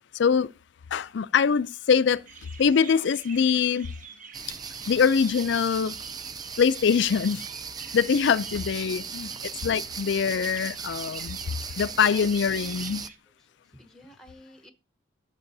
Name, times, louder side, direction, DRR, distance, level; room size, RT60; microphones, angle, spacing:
voice 1, 0.1-0.5 0.9-2.2 2.6-3.9 4.9-6.0 6.6-7.5 7.9-9.3 9.6-11.4 11.8-13.0, left 6 dB, 60° left, 0.4 m, -23 dB
sound 1, 2.2-13.2, right 6 dB, 40° right, 0.9 m, -47 dB
sound 2, 4.3-13.1, right 6 dB, 20° right, 0.4 m, -38 dB
voice 2, 8.1-9.1 11.7-12.9 13.3-14.7, left 1 dB, ahead, 0.9 m, -53 dB
14.5 x 6.8 x 2.6 m
head